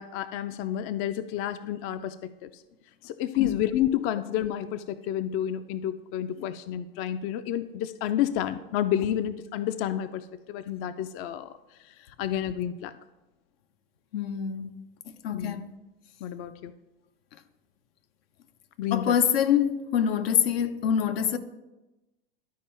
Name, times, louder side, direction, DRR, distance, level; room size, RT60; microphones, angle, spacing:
voice 1, 0.0-2.6 3.0-11.5 11.8-12.9 15.3-15.6 16.2-16.7 18.8-19.1, left 11 dB, 50° left, 0.5 m, -30 dB
voice 2, 14.1-14.7 15.2-15.7 18.9-21.4, left 8 dB, 85° left, 0.7 m, -25 dB
12.5 x 4.6 x 4.3 m
supercardioid pair, 110°, 29 cm